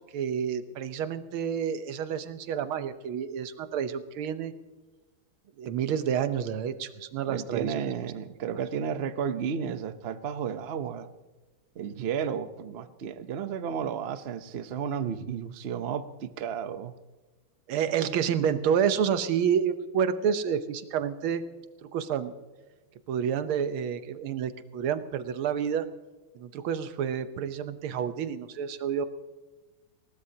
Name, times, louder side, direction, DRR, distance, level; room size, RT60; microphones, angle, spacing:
voice 1, 0.0-4.5 5.6-7.7 8.5-8.6 17.7-21.4 21.9-22.3 23.1-25.9 26.4-29.1, right 8 dB, 90° right, 11 dB, 1.7 m, -29 dB
voice 2, 7.3-11.1 11.8-16.9, right 7 dB, 65° right, 10 dB, 0.6 m, -33 dB
20.5 x 18.5 x 2.8 m, 1.2 s
omnidirectional pair, 2.2 m